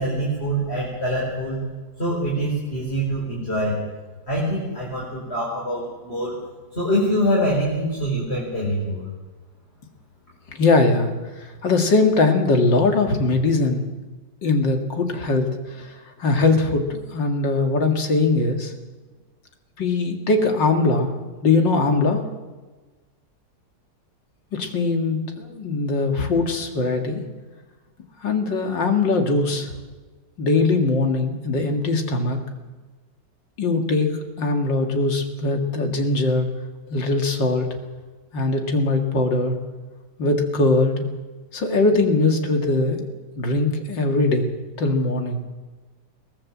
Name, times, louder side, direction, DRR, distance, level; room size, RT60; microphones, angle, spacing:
voice 1, 0.0-1.7 2.0-3.8 4.3-6.4 6.7-9.1, equal, 35° left, -4 dB, 4.9 m, -24 dB
voice 2, 10.5-11.1 11.4-13.8 14.4-15.9 16.2-18.7 19.8-21.1 21.4-22.2 24.5-27.2 28.2-29.7 30.4-32.4 33.6-34.1 34.4-36.5 36.9-37.7 38.3-39.5 40.2-41.1 41.5-43.1 43.4-44.5 44.8-45.4, left 3 dB, 90° left, 4 dB, 2.9 m, -21 dB
22.5 x 17.5 x 7.4 m, 1.3 s
omnidirectional pair, 1.9 m